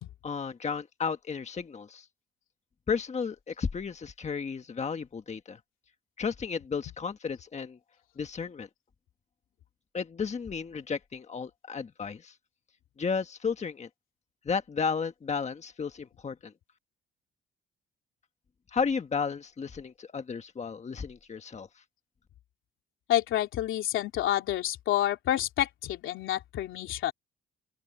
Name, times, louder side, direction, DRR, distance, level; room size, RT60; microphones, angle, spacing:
voice 1, 0.2-2.0 2.9-5.6 6.2-7.8 8.2-8.7 9.9-12.3 13.0-13.9 14.4-16.5 18.7-21.7, left 5 dB, 35° left, 1.5 m, -33 dB
voice 2, 23.1-27.1, left 12 dB, 85° left, 2.9 m, -29 dB
open air
cardioid pair, 90°, 20 cm